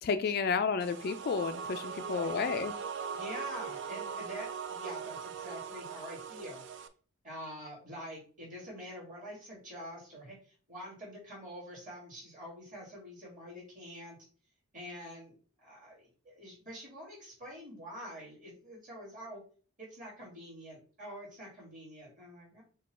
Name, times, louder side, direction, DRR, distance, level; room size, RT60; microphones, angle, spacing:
voice 1, 0.0-2.7, left 5 dB, 45° left, 10 dB, 0.3 m, -31 dB
sound 1, 0.8-6.9, right 6 dB, 55° right, 0.4 m, -40 dB
voice 2, 1.9-2.4 3.1-6.6 7.2-14.2 14.7-19.4 19.8-22.6, equal, 35° right, -3 dB, 2.6 m, -46 dB
5.2 x 2.3 x 4.2 m, 0.39 s
head